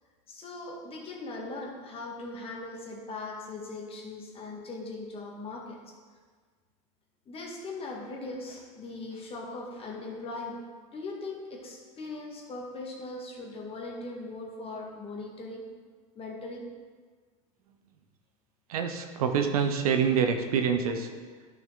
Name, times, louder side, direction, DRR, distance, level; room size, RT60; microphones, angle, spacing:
voice 1, 0.3-5.8 7.3-10.6 10.9-15.7 16.2-16.6, left 2 dB, 30° left, -1 dB, 2.0 m, -39 dB
voice 2, 18.7-21.1, right 6 dB, 80° right, 5 dB, 1.0 m, -26 dB
11.0 x 5.9 x 3.9 m, 1.5 s
hypercardioid pair, 100°, 18 cm